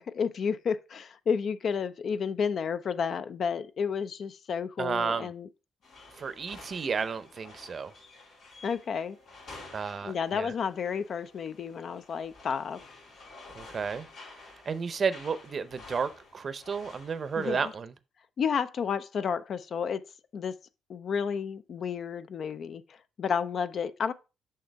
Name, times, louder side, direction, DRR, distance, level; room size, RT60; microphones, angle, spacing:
voice 1, 0.0-5.5 8.6-9.2 10.0-12.8 17.4-17.7 18.4-20.0 20.3-20.5 20.9-24.1, left 6 dB, 55° left, 0.4 m, -31 dB
voice 2, 4.8-5.3 6.2-7.9 9.7-10.5 13.5-14.1 14.7-17.9, right 5 dB, 45° right, 0.6 m, -32 dB
sound 1, 5.8-17.8, left 3 dB, 85° left, 3.7 m, -51 dB
6.5 x 5.7 x 3.4 m
cardioid pair, 90°, 0 cm